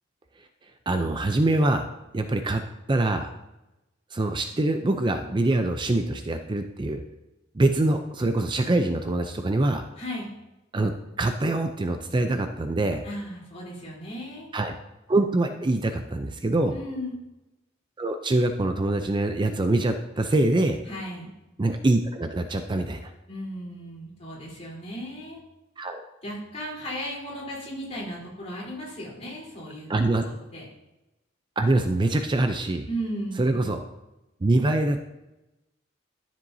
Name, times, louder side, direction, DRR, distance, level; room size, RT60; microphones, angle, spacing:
voice 1, 0.9-1.9 2.1-2.6 2.9-3.3 4.1-7.0 7.6-9.9 10.7-10.9 11.2-13.0 14.5-14.7 15.1-16.7 18.0-20.8 21.6-23.1 25.8-26.0 29.9-30.2 31.6-32.9 33.4-33.8 34.4-35.0, right 2 dB, 25° right, 7 dB, 0.5 m, -24 dB
voice 2, 10.0-10.3 13.0-14.5 16.7-17.2 20.9-21.3 23.3-25.4 26.2-29.9 30.2-30.7 32.9-33.5, equal, 35° left, -5 dB, 3.7 m, -35 dB
13.0 x 7.4 x 2.7 m, 0.97 s
head